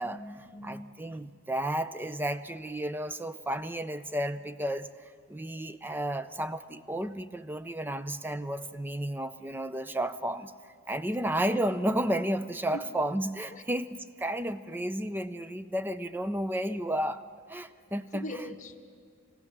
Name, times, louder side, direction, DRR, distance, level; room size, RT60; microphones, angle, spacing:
voice 1, 0.0-0.9 12.7-12.9 13.5-13.6 18.1-18.8, left 1 dB, 35° left, 2 dB, 1.4 m, -41 dB
voice 2, 0.6-4.9 5.3-10.5 10.9-17.2 17.5-18.3, right 1 dB, 10° right, 12 dB, 0.5 m, -32 dB
26.5 x 15.5 x 7.3 m, 2.2 s
head